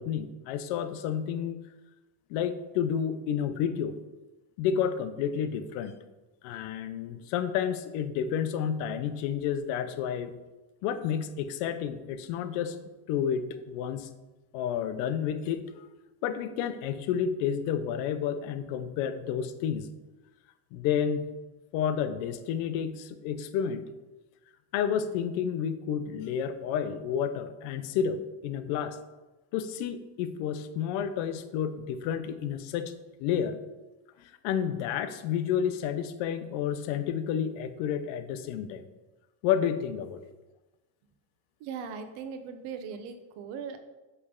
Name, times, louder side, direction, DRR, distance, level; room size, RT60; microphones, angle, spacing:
voice 1, 0.0-1.6 2.3-4.0 4.6-5.9 6.4-10.3 10.8-12.8 13.1-14.1 14.5-15.9 16.2-19.9 20.7-21.3 21.7-23.9 24.7-29.0 29.5-32.9 33.2-33.6 34.2-38.8 39.4-40.2, left 8 dB, 90° left, 11 dB, 0.7 m, -30 dB
voice 2, 41.6-43.8, right 6 dB, 80° right, 8 dB, 0.9 m, -39 dB
8.0 x 3.4 x 3.7 m, 1.1 s
cardioid pair, 110°, 49 cm